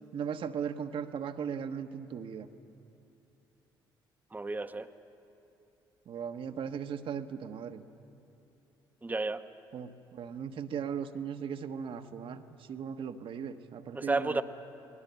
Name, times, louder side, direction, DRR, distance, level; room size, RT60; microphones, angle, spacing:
voice 1, 0.1-2.5 6.1-7.8 9.7-14.4, right 7 dB, 50° right, 7 dB, 1.2 m, -38 dB
voice 2, 4.3-4.9 9.0-9.4 13.9-14.4, right 3 dB, 15° right, 8 dB, 1.0 m, -31 dB
29.5 x 20.0 x 7.1 m, 2.8 s
figure-of-eight pair, 50°, 11 cm